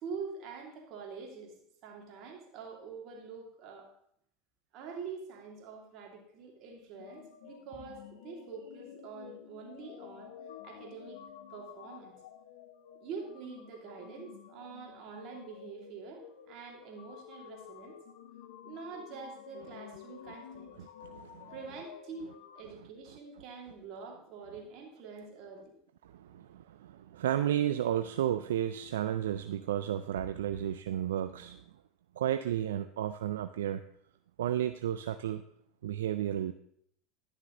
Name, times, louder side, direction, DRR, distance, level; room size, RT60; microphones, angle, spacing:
voice 1, 0.0-1.5 1.8-3.9 4.7-10.3 10.6-11.2 11.5-12.1 13.0-18.0 18.6-20.7 21.5-25.7, right 5 dB, 55° right, 0 dB, 2.6 m, -45 dB
sound 1, 7.0-22.6, left 10 dB, 75° left, 0.6 m, -51 dB
voice 2, 20.8-21.5 26.1-31.6 32.2-33.8 34.4-35.4 35.8-36.5, right 11 dB, 80° right, 10 dB, 0.3 m, -32 dB
11.5 x 6.5 x 3.8 m, 0.69 s
hypercardioid pair, 85°, 0 cm